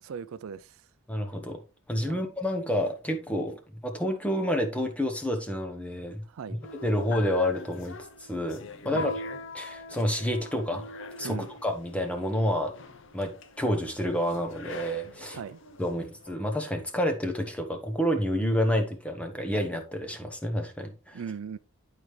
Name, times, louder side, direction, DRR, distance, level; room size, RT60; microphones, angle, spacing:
voice 1, 0.0-0.8 2.0-2.2 6.2-6.6 8.9-9.1 11.2-11.5 15.2-15.6 21.1-21.6, right 6 dB, 70° right, 0.4 m, -39 dB
voice 2, 1.1-1.6 1.9-6.2 6.8-9.1 9.5-10.8 11.1-12.7 13.1-15.4 15.8-21.2, equal, 5° left, 1.0 m, -29 dB
sound 1, 6.6-16.3, left 2 dB, 55° left, 0.7 m, -42 dB
11.0 x 4.6 x 3.2 m
head